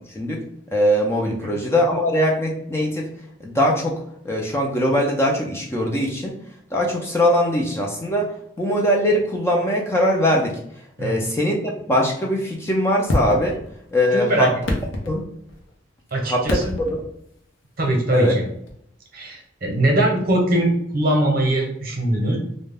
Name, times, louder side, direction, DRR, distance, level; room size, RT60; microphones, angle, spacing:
voice 1, 0.7-3.1 3.4-6.4 6.7-10.6 11.0-13.6 13.9-14.5 15.1-15.2 16.2-17.0 18.1-18.3, equal, 15° left, -1 dB, 0.3 m, -21 dB
sound 1, 13.1-14.0 14.5-15.7 16.4-17.1 18.7-18.8, left 1 dB, 90° left, 0.5 m, -26 dB
voice 2, 14.1-14.5 16.1-16.7 17.8-18.4 19.1-22.4, right 1 dB, 50° right, 0 dB, 0.7 m, -21 dB
2.2 x 2.0 x 3.2 m, 0.72 s
head